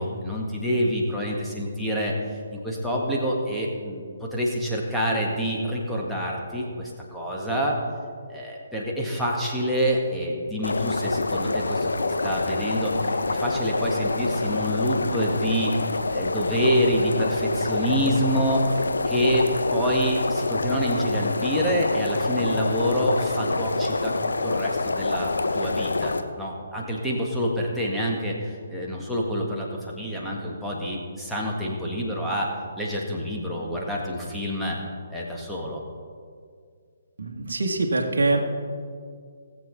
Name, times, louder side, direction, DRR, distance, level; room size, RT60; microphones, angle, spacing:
voice 1, 0.0-2.1 2.5-7.8 8.3-15.7 16.1-18.6 19.1-32.5 32.8-34.8 35.1-35.8, equal, ahead, -5 dB, 1.7 m, -27 dB
sound 1, 10.6-26.2, left 3 dB, 70° left, 0.7 m, -26 dB
voice 2, 37.2-38.4, right 2 dB, 60° right, 2 dB, 1.4 m, -24 dB
18.5 x 7.7 x 4.0 m, 2.1 s
figure-of-eight pair, 135°, 0 cm